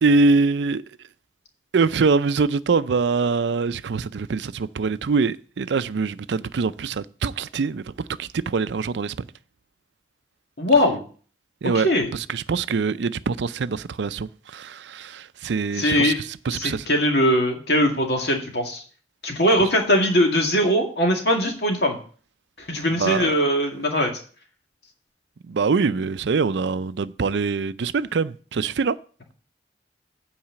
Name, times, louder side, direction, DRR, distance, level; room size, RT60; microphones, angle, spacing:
voice 1, 0.0-0.8 1.7-7.9 8.2-9.3 11.6-16.1 16.5-16.9 23.0-23.3 25.5-29.0, right 4 dB, 80° right, 0.4 m, -23 dB
voice 2, 10.6-11.0 11.7-12.1 15.8-16.2 16.5-18.8 19.2-22.0 22.6-24.1, equal, 65° left, 2.1 m, -21 dB
8.8 x 4.8 x 7.5 m
head